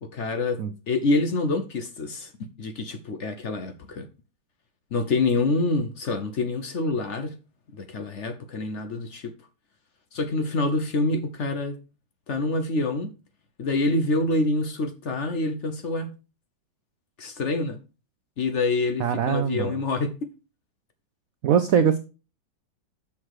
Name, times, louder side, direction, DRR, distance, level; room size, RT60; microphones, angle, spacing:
voice 1, 0.0-0.6 0.9-2.3 2.6-4.1 4.9-7.4 7.7-9.3 10.1-11.8 12.3-13.1 13.6-16.1 17.2-17.8 18.4-20.2, left 2 dB, 55° left, 0.8 m, -26 dB
voice 2, 19.0-19.8 21.4-22.0, right 8 dB, 90° right, 0.7 m, -22 dB
7.2 x 5.9 x 4.8 m
omnidirectional pair, 2.2 m